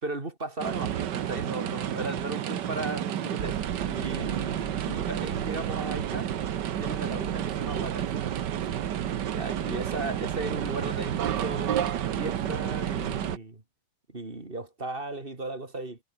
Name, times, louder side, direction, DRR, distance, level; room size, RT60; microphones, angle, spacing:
voice 1, 0.0-6.3 6.8-8.4 9.3-13.6 14.1-16.0, right 2 dB, 25° right, 3.0 m, -36 dB
sound 1, 0.6-13.4, right 10 dB, 60° right, 1.6 m, -30 dB
omnidirectional pair, 2.4 m